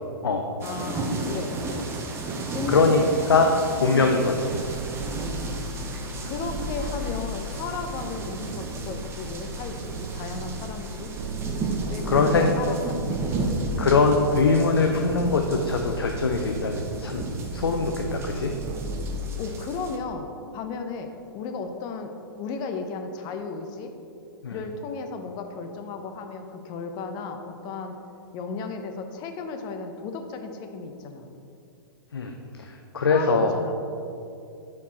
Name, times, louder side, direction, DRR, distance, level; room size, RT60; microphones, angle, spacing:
voice 1, 0.6-1.9 2.5-3.1 5.7-5.8 6.2-11.1 11.9-12.3 12.6-13.2 19.4-20.3 20.5-23.9 24.5-28.0 28.3-31.3 33.1-33.8, left 4 dB, 35° left, 6 dB, 0.7 m, -34 dB
sound 1, 0.6-20.0, right 3 dB, 20° right, 0.8 m, -34 dB
voice 2, 2.7-3.0 3.3-3.5 3.8-4.6 12.1-12.5 13.8-17.2 17.5-18.5 24.4-24.6 32.1-32.3 32.6-33.5, left 4 dB, 85° left, 3 dB, 0.5 m, -22 dB
sound 2, 4.5-19.4, right 1 dB, 50° right, 0.5 m, -35 dB
7.2 x 4.5 x 4.1 m, 2.7 s
hypercardioid pair, 120°, 12 cm